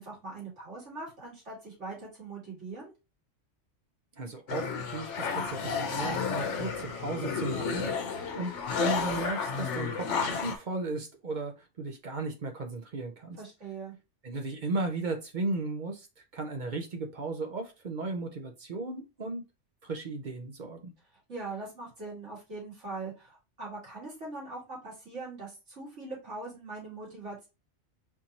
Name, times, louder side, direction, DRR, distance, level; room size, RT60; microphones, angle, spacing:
voice 1, 0.0-2.9 13.4-13.9 21.3-27.5, right 3 dB, 75° right, -6 dB, 2.6 m, -41 dB
voice 2, 4.2-13.4 14.2-16.1 16.3-19.4 19.8-20.9, right 3 dB, 50° right, 4 dB, 0.7 m, -35 dB
sound 1, 4.5-10.6, left 5 dB, 75° left, 1.0 m, -32 dB
4.4 x 2.7 x 2.9 m, 0.27 s
omnidirectional pair, 1.2 m